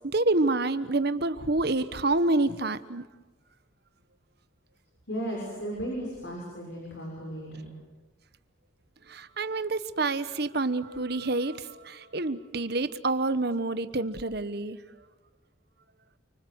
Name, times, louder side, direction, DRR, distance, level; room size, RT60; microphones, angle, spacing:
voice 1, 0.0-3.0 9.1-14.8, right 2 dB, 55° right, 13 dB, 1.2 m, -28 dB
voice 2, 5.1-7.8, right 1 dB, 60° left, -2 dB, 6.9 m, -35 dB
29.0 x 25.0 x 8.1 m, 1.2 s
head